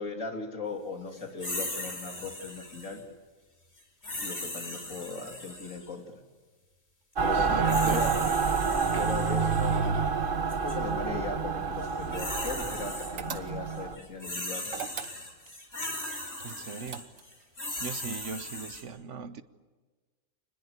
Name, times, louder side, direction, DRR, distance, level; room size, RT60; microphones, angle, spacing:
voice 1, 0.0-3.0 4.2-6.0 7.2-8.1 9.0-9.8 10.6-14.7, left 3 dB, 80° left, 3.2 m, -38 dB
sound 1, 1.4-3.0 4.0-5.9 7.3-9.8 10.5-10.8 11.8-13.4 13.7-18.8, left 1 dB, 55° left, 4.7 m, -38 dB
Mechanical fan, 7.2-14.0, right 5 dB, 45° right, 1.4 m, -28 dB
voice 2, 7.3-8.0 16.4-17.1 17.8-19.4, right 5 dB, 65° right, 1.3 m, -39 dB
sound 2, 13.2-13.9 14.7-15.6 16.4-17.4, right 7 dB, 85° right, 1.5 m, -40 dB
27.0 x 20.0 x 9.7 m
omnidirectional pair, 1.3 m